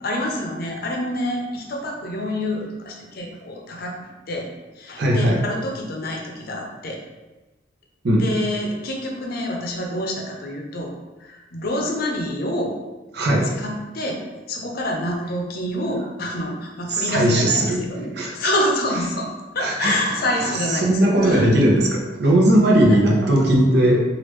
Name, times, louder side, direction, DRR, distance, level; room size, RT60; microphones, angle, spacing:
voice 1, 0.0-4.5 4.8-7.0 8.2-10.9 11.2-12.7 13.6-14.2 14.5-19.3 19.5-21.7 22.8-23.0, left 1 dB, 55° left, 1 dB, 0.6 m, -27 dB
voice 2, 5.0-5.4 8.0-8.3 13.1-13.6 16.9-17.8 18.2-18.3 19.6-20.0 20.7-24.0, right 1 dB, 65° right, -1 dB, 0.7 m, -18 dB
3.4 x 2.4 x 3.1 m, 1.1 s
head